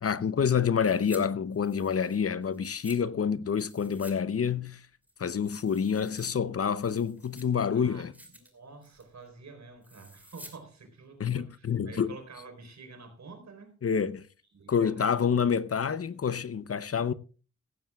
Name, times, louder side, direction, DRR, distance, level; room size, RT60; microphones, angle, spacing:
voice 1, 0.0-4.8 5.2-8.1 11.2-12.1 13.8-14.3 14.7-17.1, left 7 dB, 50° left, 0.7 m, -28 dB
sound 1, 0.8-1.2 1.5-3.0 3.6-4.2 4.4-4.5 5.0-6.3 6.7-7.7 8.0-8.5 8.8-9.1 9.8-10.6 10.9-11.0, equal, 5° right, 2.6 m, -51 dB
voice 2, 7.7-13.8 14.4-15.4, right 4 dB, 65° right, 4.2 m, -48 dB
16.5 x 15.0 x 2.3 m
wide cardioid pair, 145°, 29 cm